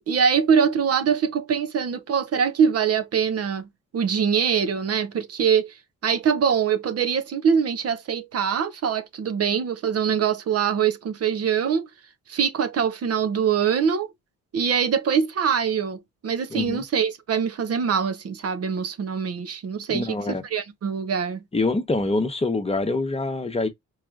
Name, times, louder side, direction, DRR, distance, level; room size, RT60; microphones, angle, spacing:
voice 1, 0.0-3.7 3.9-5.7 6.0-11.9 12.3-14.1 14.5-21.4, right 7 dB, 50° right, 0.8 m, -23 dB
voice 2, 16.5-16.8 19.9-20.4 21.5-23.7, left 2 dB, 20° left, 1.0 m, -25 dB
4.8 x 2.9 x 2.4 m
cardioid pair, 90°, 30 cm